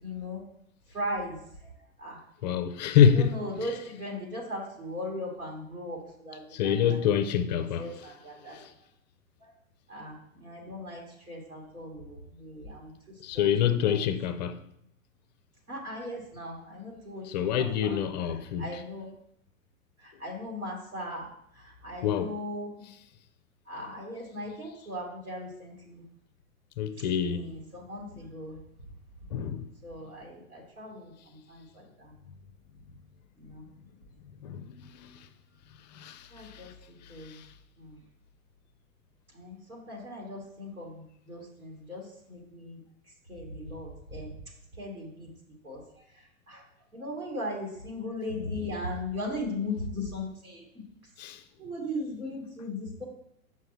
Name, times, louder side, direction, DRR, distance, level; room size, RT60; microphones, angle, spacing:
voice 1, 0.0-0.4 0.9-1.4 2.0-2.2 3.1-7.2 7.8-8.6 9.4-9.5 9.9-12.9 13.3-13.5 13.8-14.0 15.7-18.0 18.6-19.1 20.0-21.3 21.5-22.9 23.7-26.0 27.2-28.6 29.8-32.1 33.4-33.6 36.3-36.7 37.1-37.4 37.8-38.0 39.3-42.8 43.3-44.3 44.8-45.3 45.6-45.8 46.5-46.6 46.9-50.6 51.6-53.0, left 1 dB, 85° right, 2.7 m, -38 dB
voice 2, 2.4-3.4 6.5-8.1 8.5-8.7 10.7-10.8 13.2-14.6 17.2-18.8 22.0-22.3 26.8-27.6 28.1-28.2 29.3-29.7 34.4-35.3 35.9-36.7 37.0-37.5 51.2-51.4, left 8 dB, 35° left, 0.4 m, -27 dB
7.5 x 5.6 x 3.0 m
figure-of-eight pair, 100°, 42 cm